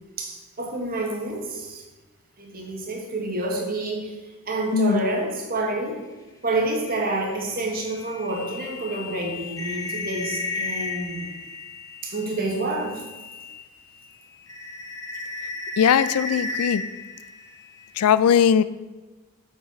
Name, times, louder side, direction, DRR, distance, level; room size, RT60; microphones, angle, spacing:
voice 1, 0.2-1.8 2.4-4.1 4.5-6.0 6.4-11.3 12.0-13.0, right 2 dB, 40° right, 0 dB, 1.4 m, -28 dB
voice 2, 4.7-5.0 15.8-16.9 18.0-18.6, left 8 dB, 90° left, 16 dB, 0.4 m, -19 dB
sound 1, 6.9-13.7 14.0-18.1, left 3 dB, 15° left, 0.8 m, -34 dB
6.5 x 5.6 x 5.0 m, 1.2 s
head